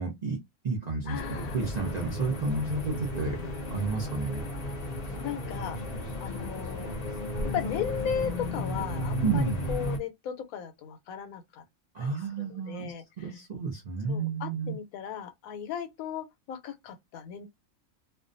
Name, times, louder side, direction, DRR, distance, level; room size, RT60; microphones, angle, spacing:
voice 1, 0.0-4.4 9.2-9.6 11.9-14.8, right 4 dB, 60° right, 0.4 m, -31 dB
voice 2, 1.1-1.6 5.2-5.8 6.2-6.9 7.5-11.6 12.0-13.0 14.1-17.5, left 8 dB, 90° left, 1.0 m, -36 dB
sound 1, 1.1-10.0, left 1 dB, 45° left, 0.5 m, -34 dB
2.4 x 2.2 x 2.5 m
omnidirectional pair, 1.5 m